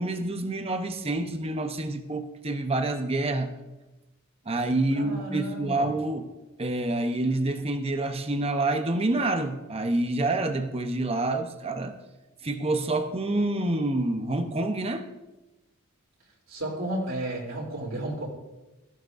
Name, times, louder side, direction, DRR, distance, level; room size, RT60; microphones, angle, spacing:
voice 1, 0.0-3.5 4.5-6.3 6.6-12.0 12.4-15.1, right 2 dB, 25° right, 7 dB, 0.9 m, -27 dB
voice 2, 4.9-5.9 16.5-18.3, right 1 dB, 65° right, -3 dB, 3.3 m, -32 dB
17.0 x 14.5 x 2.6 m, 1.1 s
head